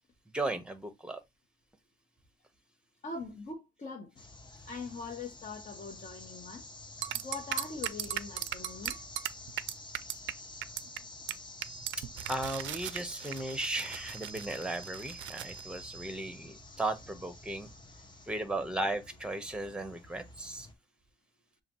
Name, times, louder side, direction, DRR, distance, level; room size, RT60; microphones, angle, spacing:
voice 1, 0.3-1.2 12.3-17.7 18.3-20.7, right 2 dB, 5° right, 1.1 m, -36 dB
voice 2, 3.0-4.1 4.6-6.6 7.2-9.0 15.9-16.3 16.5-16.8 17.6-18.3, left 4 dB, 40° left, 1.3 m, -43 dB
sound 1, 4.2-20.7, left 2 dB, 20° left, 1.1 m, -50 dB
sound 2, 7.0-10.3 10.6-11.0 11.3-11.4 11.6-15.6, right 13 dB, 70° right, 0.4 m, -37 dB
sound 3, 11.6-18.0, right 6 dB, 25° right, 0.9 m, -51 dB
6.8 x 2.5 x 3.0 m
cardioid pair, 90°, 20 cm